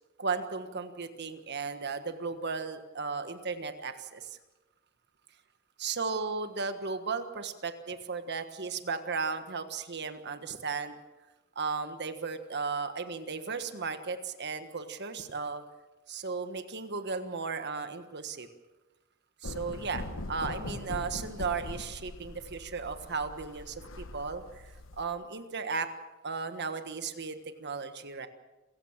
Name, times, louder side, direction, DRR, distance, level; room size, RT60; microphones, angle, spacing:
voice 1, 0.2-4.4 5.8-11.0 11.5-15.6 16.1-18.5 19.4-25.9 26.2-28.3, right 5 dB, 55° right, 9 dB, 1.5 m, -35 dB
sound 1, 19.4-25.0, left 1 dB, 65° left, 1.4 m, -41 dB
28.0 x 15.5 x 7.4 m, 1.1 s
head